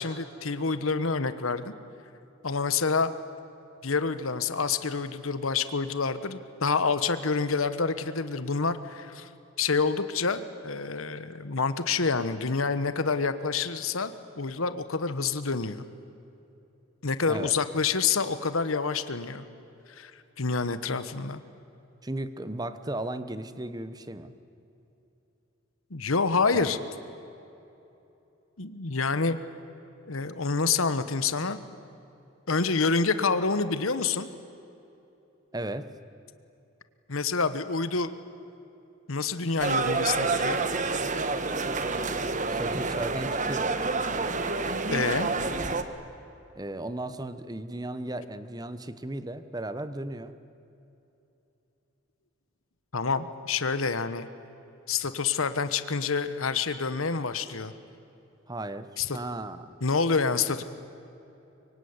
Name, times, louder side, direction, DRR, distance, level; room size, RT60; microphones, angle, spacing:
voice 1, 0.0-1.7 2.4-3.1 3.8-9.3 9.6-15.8 17.0-19.4 20.0-20.1 20.4-21.4 25.9-26.8 28.6-29.4 30.1-31.6 32.5-34.3 37.1-38.1 39.1-40.6 44.9-45.3 52.9-54.3 54.9-57.7 59.0-59.2 59.8-60.6, left 4 dB, 90° left, 12 dB, 1.2 m, -27 dB
voice 2, 22.0-24.3 26.5-26.7 35.5-35.9 42.5-43.8 46.6-50.3 58.5-58.9 59.1-59.8, right 1 dB, 20° right, 12 dB, 1.1 m, -35 dB
sound 1, 39.6-45.8, right 3 dB, 35° right, 1.4 m, -28 dB
24.0 x 24.0 x 9.7 m, 2.9 s
head